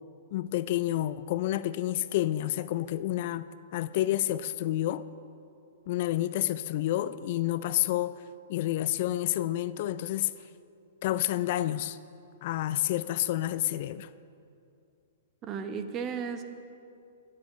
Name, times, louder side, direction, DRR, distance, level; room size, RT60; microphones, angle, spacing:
voice 1, 0.3-3.5 3.7-5.0 5.9-8.2 8.5-10.5 11.0-12.0 12.4-14.1, left 14 dB, 55° left, 0.3 m, -29 dB
voice 2, 15.4-16.4, right 6 dB, 30° right, 0.9 m, -34 dB
19.0 x 8.5 x 3.1 m
hypercardioid pair, 130°, 0 cm